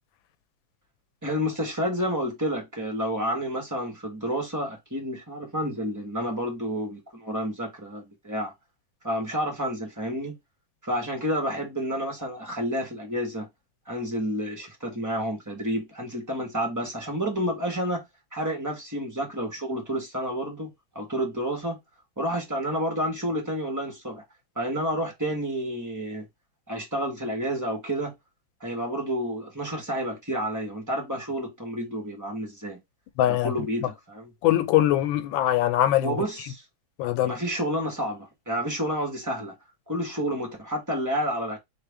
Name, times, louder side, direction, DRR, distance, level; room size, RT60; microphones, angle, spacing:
voice 1, 1.2-8.5 9.0-10.3 10.8-13.5 13.9-18.0 18.3-21.8 22.2-24.2 24.5-26.3 26.7-28.1 28.6-32.8 33.2-34.3 36.0-36.6 37.2-39.5 39.9-41.6, equal, 10° right, 1.1 m, -30 dB
voice 2, 33.2-33.5 34.4-36.1 37.0-37.3, left 13 dB, 90° left, 1.4 m, -22 dB
3.3 x 3.2 x 3.5 m
omnidirectional pair, 2.1 m